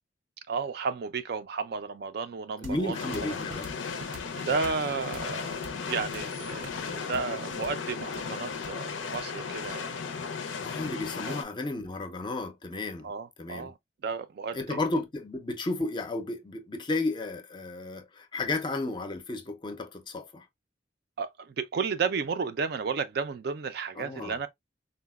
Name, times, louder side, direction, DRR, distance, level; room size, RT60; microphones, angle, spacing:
voice 1, 0.5-3.4 3.9-4.1 4.4-10.2 11.3-11.4 13.0-13.8 14.0-15.0 21.2-24.5, right 5 dB, 55° right, 0.4 m, -33 dB
voice 2, 2.6-3.7 10.4-13.1 13.4-13.7 14.5-20.5 24.0-24.4, left 2 dB, 25° left, 0.4 m, -33 dB
sound 1, 2.6-10.2, right 2 dB, 85° right, 0.8 m, -47 dB
sound 2, 2.9-11.4, left 5 dB, 90° left, 0.5 m, -35 dB
3.8 x 2.1 x 2.2 m
head